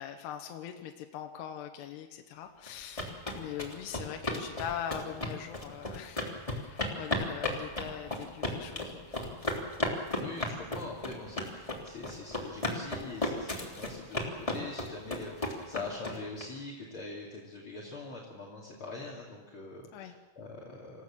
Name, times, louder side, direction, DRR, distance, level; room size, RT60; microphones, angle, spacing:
voice 1, 0.0-9.4 19.9-20.1, left 9 dB, 75° left, 4 dB, 2.6 m, -42 dB
sound 1, 2.7-16.4, left 1 dB, 10° left, 2.1 m, -34 dB
voice 2, 10.1-21.0, left 3 dB, 35° left, -3 dB, 2.6 m, -43 dB
27.5 x 16.5 x 7.5 m, 1.2 s
omnidirectional pair, 5.8 m